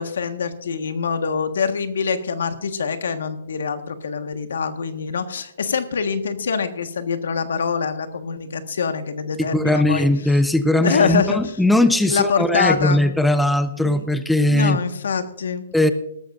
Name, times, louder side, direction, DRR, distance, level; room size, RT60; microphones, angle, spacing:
voice 1, 0.0-10.1 10.8-11.6 12.1-13.0 13.8-14.0 14.5-15.6, left 6 dB, 85° left, 8 dB, 1.5 m, -24 dB
voice 2, 9.4-14.8 15.7-15.9, left 1 dB, ahead, 10 dB, 0.6 m, -19 dB
19.0 x 13.5 x 2.6 m, 0.79 s
hypercardioid pair, 160°, 0 cm